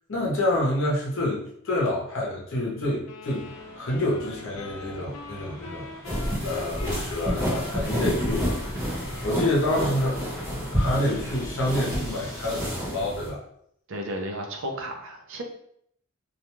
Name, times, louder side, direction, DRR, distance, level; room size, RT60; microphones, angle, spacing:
voice 1, 0.1-3.5 3.7-5.9 6.4-8.9 9.2-10.2 10.7-13.4, left 1 dB, 60° left, -3 dB, 0.7 m, -27 dB
sound 1, 3.1-11.1, left 5 dB, 90° left, 0.3 m, -43 dB
sound 2, 3.4-12.7, equal, 10° left, 0.5 m, -46 dB
sound 3, 6.1-13.3, equal, 15° right, 1.0 m, -30 dB
voice 2, 13.9-15.4, right 1 dB, 60° right, 3 dB, 0.5 m, -33 dB
2.4 x 2.2 x 3.0 m, 0.69 s
head